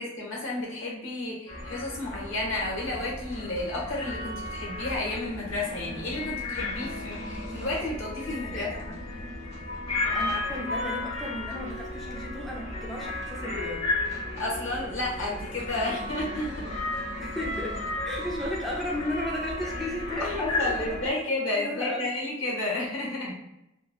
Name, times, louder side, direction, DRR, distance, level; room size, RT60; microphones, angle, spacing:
voice 1, 0.0-8.9 14.4-16.7 20.2-23.3, left 2 dB, 80° left, -3 dB, 1.0 m, -31 dB
sound 1, 1.5-21.1, left 2 dB, 30° left, 1.0 m, -34 dB
voice 2, 8.2-9.0 10.1-13.9 16.6-16.8 17.2-21.2 21.5-22.2, left 1 dB, ahead, -3 dB, 0.3 m, -35 dB
2.9 x 2.5 x 2.3 m, 0.87 s
head